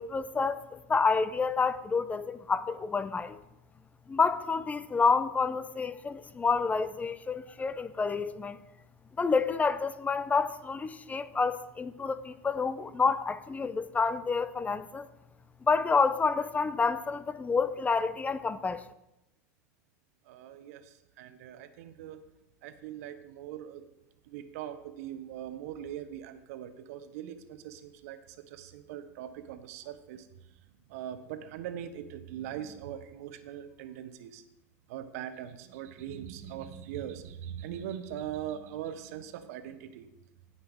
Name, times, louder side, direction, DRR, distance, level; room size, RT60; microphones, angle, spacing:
voice 1, 0.0-3.4 4.1-8.6 9.2-15.1 15.6-18.8, left 4 dB, 15° left, 0.7 m, -29 dB
voice 2, 20.3-22.2 22.6-23.8 24.3-30.3 30.9-34.4 34.9-40.1, right 10 dB, 70° right, 1.0 m, -41 dB
16.5 x 5.7 x 3.6 m
hypercardioid pair, 90°, 9 cm